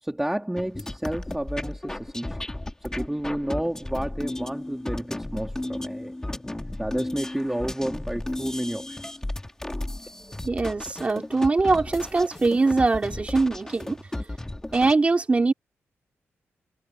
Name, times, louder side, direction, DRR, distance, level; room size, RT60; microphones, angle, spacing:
voice 1, 0.0-2.4 2.8-6.1 6.8-9.0, right 1 dB, 5° right, 3.2 m, -31 dB
sound 1, 0.6-14.9, left 1 dB, 10° left, 2.2 m, -34 dB
voice 2, 10.4-14.0 14.7-15.5, right 3 dB, 30° right, 2.9 m, -22 dB
wide cardioid pair, 115°, 5 cm